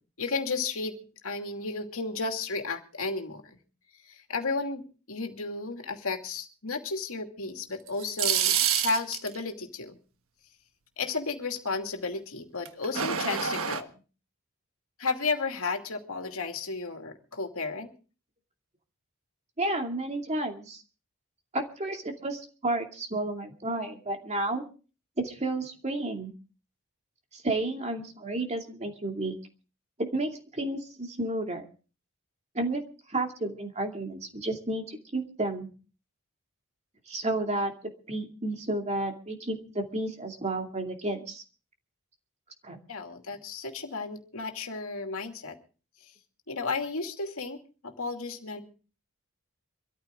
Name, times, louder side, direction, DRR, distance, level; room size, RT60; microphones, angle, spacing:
voice 1, 0.2-1.0 1.2-3.6 4.1-10.0 11.0-13.9 15.0-17.9 42.9-45.6 46.0-46.1 46.5-48.6, left 3 dB, 65° left, 4 dB, 2.6 m, -33 dB
sound 1, 7.9-9.4 12.7-13.8, right 8 dB, 65° right, 1.4 m, -27 dB
voice 2, 19.6-20.8 21.5-24.6 25.2-26.3 27.3-29.3 30.0-31.6 32.5-32.8 33.1-35.7 37.1-37.7 38.1-41.4 42.6-42.8, right 2 dB, 30° right, 3 dB, 2.5 m, -31 dB
24.5 x 14.0 x 3.7 m, 0.37 s
head